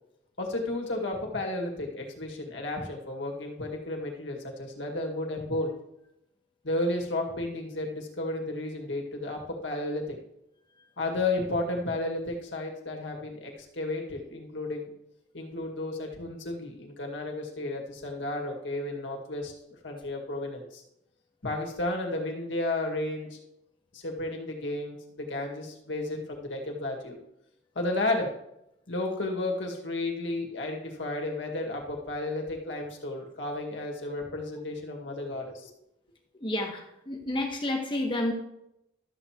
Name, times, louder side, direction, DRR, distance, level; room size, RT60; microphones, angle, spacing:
voice 1, 0.4-5.7 6.6-10.2 11.0-14.9 15.3-19.5 19.8-20.8 21.4-23.4 23.9-27.2 27.8-28.3 28.9-35.7, left 2 dB, 85° left, 1 dB, 2.0 m, -33 dB
voice 2, 36.4-38.3, left 1 dB, 25° left, 1 dB, 1.3 m, -30 dB
12.5 x 7.6 x 3.0 m, 0.82 s
head